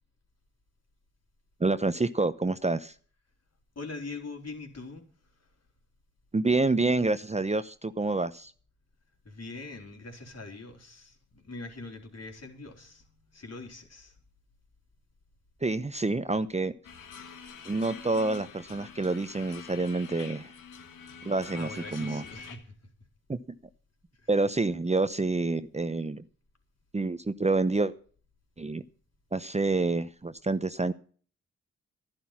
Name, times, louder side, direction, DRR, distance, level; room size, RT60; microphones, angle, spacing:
voice 1, 1.6-2.9 6.3-8.5 15.6-16.7 17.7-20.5 21.2-22.2 23.3-23.4 24.3-26.2 26.9-27.9 28.6-28.8 29.3-30.9, right 3 dB, 20° right, 13 dB, 0.8 m, -28 dB
voice 2, 3.8-5.1 9.2-14.1 21.5-22.7 24.2-24.3, left 3 dB, 55° left, 3 dB, 4.2 m, -43 dB
sound 1, 16.8-22.6, left 6 dB, 90° left, 1.7 m, -45 dB
11.5 x 11.0 x 5.9 m, 0.43 s
supercardioid pair, 40°, 31 cm